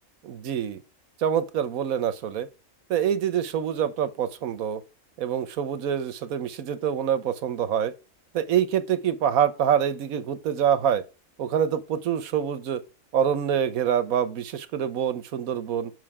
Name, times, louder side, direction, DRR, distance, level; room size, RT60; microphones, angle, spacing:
voice 1, 0.2-0.8 1.2-2.5 2.9-4.8 5.2-7.9 8.3-11.0 11.4-12.8 13.1-15.9, right 9 dB, 75° right, 1.3 m, -25 dB
7.6 x 5.8 x 4.8 m
omnidirectional pair, 1.5 m